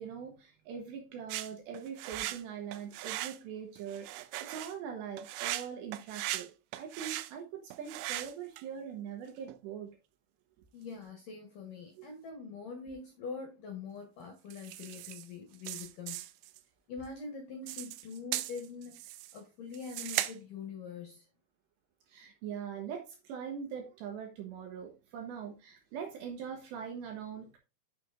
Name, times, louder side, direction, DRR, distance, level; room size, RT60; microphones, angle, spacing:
voice 1, 0.0-9.9 12.0-12.1 22.1-27.6, right 7 dB, 70° right, 2.8 m, -42 dB
sound 1, 1.3-2.4 2.7-3.4 3.8-4.7 5.2-6.5 6.7-7.3 7.7-8.6 9.3-9.6 14.5-15.3 15.5-16.6 17.7-19.4 19.7-20.3, right 16 dB, 90° right, 2.6 m, -38 dB
voice 2, 10.7-16.2 16.9-21.3, left 5 dB, 65° left, 2.1 m, -44 dB
8.9 x 6.6 x 2.5 m
omnidirectional pair, 6.0 m